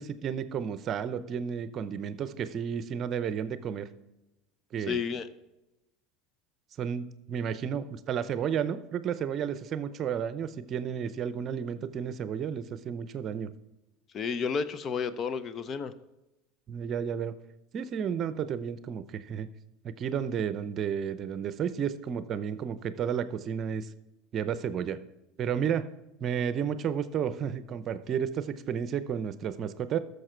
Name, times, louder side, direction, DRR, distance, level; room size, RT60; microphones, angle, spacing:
voice 1, 0.0-3.9 4.7-5.0 6.8-13.5 16.7-17.3 17.7-19.5 19.8-23.9 24.3-25.0 25.4-25.9 26.2-30.0, right 8 dB, 45° right, 13 dB, 0.7 m, -32 dB
voice 2, 4.9-5.3 14.1-15.9, left 6 dB, 40° left, 13 dB, 0.7 m, -31 dB
13.5 x 6.6 x 4.5 m, 0.96 s
supercardioid pair, 95°, 0 cm